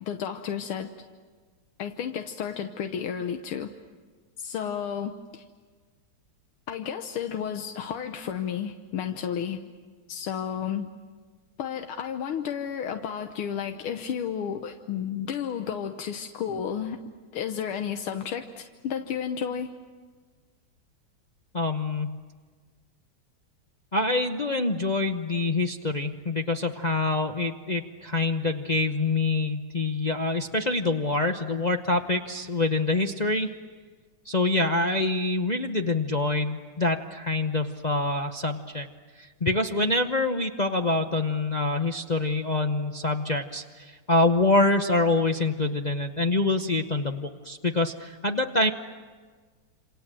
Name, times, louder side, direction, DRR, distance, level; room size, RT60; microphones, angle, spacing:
voice 1, 0.0-0.9 1.8-3.7 4.4-5.4 6.7-9.6 10.1-10.9 11.6-19.7, left 8 dB, 85° left, 6 dB, 1.9 m, -32 dB
voice 2, 21.5-22.2 23.9-33.5 34.3-38.9 39.2-48.7, left 2 dB, 60° left, 4 dB, 0.4 m, -25 dB
28.0 x 27.5 x 7.6 m, 1.5 s
omnidirectional pair, 2.3 m